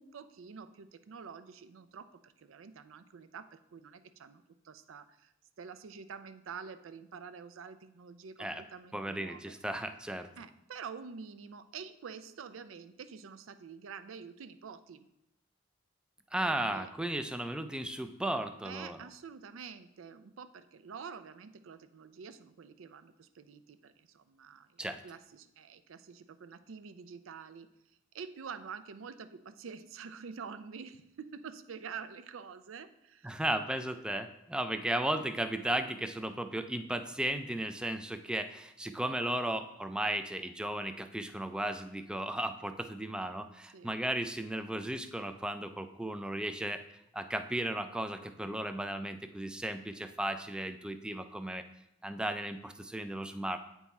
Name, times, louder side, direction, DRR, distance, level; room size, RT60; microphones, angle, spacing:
voice 1, 0.0-9.5 10.4-15.1 16.4-16.9 18.6-27.7 28.1-33.4 43.7-43.9, right 6 dB, 90° right, 10 dB, 0.4 m, -47 dB
voice 2, 8.9-10.3 16.3-19.0 24.8-25.0 33.2-46.9 47.1-51.6 52.0-53.6, right 1 dB, 5° right, 8 dB, 0.3 m, -35 dB
8.6 x 3.6 x 4.1 m, 0.83 s
head